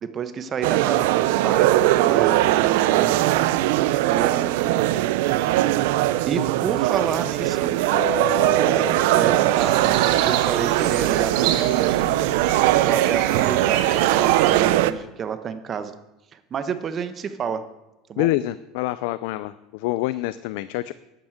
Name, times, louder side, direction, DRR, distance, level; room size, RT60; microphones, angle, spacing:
voice 1, 0.0-3.2 4.1-4.8 6.2-7.7 8.6-11.9 12.7-15.9 16.3-17.6 18.1-18.3, right 7 dB, 30° right, 10 dB, 1.1 m, -30 dB
sound 1, 0.6-14.9, right 15 dB, 80° right, 0.7 m, -20 dB
Keyboard (musical), 7.9-10.4, left 7 dB, 45° left, 2.7 m, -33 dB
sound 2, 9.6-14.6, right 9 dB, 60° right, 1.7 m, -31 dB
voice 2, 18.2-20.9, left 16 dB, 70° left, 15 dB, 0.5 m, -26 dB
11.5 x 9.2 x 7.9 m, 0.98 s
cardioid pair, 150°, 0 cm